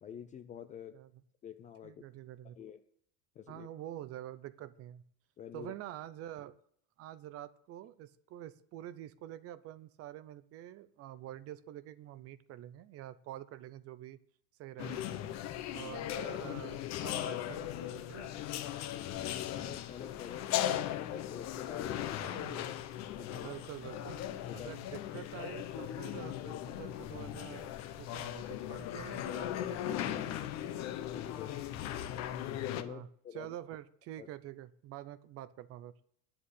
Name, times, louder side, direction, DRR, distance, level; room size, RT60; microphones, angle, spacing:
voice 1, 0.0-1.0 1.4-2.1 2.6-2.8 3.4-3.7 5.4-5.7 18.8-22.7 23.1-23.5 24.4-24.7 31.0-31.8 32.7-33.5 34.2-34.3, left 8 dB, 20° left, 10 dB, 0.4 m, -47 dB
voice 2, 1.8-2.6 3.5-5.0 5.5-6.5 7.0-14.2 14.6-15.0 15.7-18.3 22.2-22.7 23.3-24.2 24.5-30.2 32.8-35.9, right 13 dB, 35° right, 16 dB, 0.6 m, -47 dB
sound 1, 14.8-32.8, left 11 dB, 40° left, 1.0 m, -38 dB
10.0 x 7.8 x 8.4 m, 0.64 s
cardioid pair, 170°, 40 cm